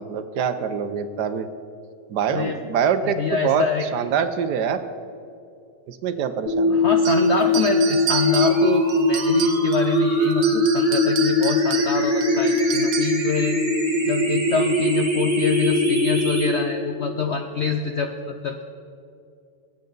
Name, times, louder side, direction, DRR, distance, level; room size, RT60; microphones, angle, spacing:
voice 1, 0.0-1.5 2.1-3.6 3.9-4.8 5.9-6.9, right 7 dB, 70° right, 10 dB, 1.3 m, -24 dB
voice 2, 2.3-2.6 3.0-4.1 6.7-13.6 14.1-18.6, left 5 dB, 65° left, 5 dB, 0.6 m, -26 dB
sound 1, 6.5-16.5, left 1 dB, 20° right, 2.4 m, -21 dB
sound 2, 7.0-9.9 10.3-13.3, right 9 dB, 90° right, 1.5 m, -31 dB
22.5 x 8.7 x 4.0 m, 2.5 s
omnidirectional pair, 1.9 m